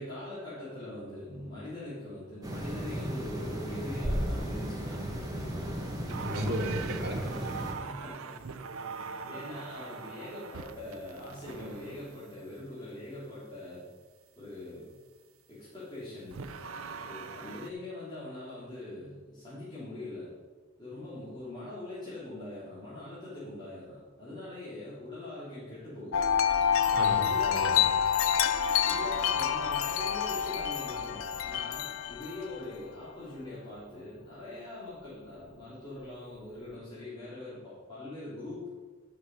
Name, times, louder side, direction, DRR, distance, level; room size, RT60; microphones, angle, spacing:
voice 1, 0.0-5.8 7.7-8.5 8.9-13.8 14.3-14.9 15.5-16.5 17.0-20.3 20.8-26.2 27.2-27.8 28.8-38.6, left 1 dB, 20° left, -11 dB, 3.3 m, -42 dB
sound 1, 2.4-7.7, equal, 15° right, 1.4 m, -35 dB
Circuit bent drum sounds, 6.1-12.4 16.3-17.7, right 5 dB, 80° right, 0.6 m, -42 dB
voice 2, 6.2-7.6 26.9-27.8, equal, 50° right, -3 dB, 2.6 m, -35 dB
Wind chime, 26.1-32.6, left 8 dB, 70° left, 0.6 m, -27 dB
12.0 x 6.3 x 5.5 m, 1.4 s
head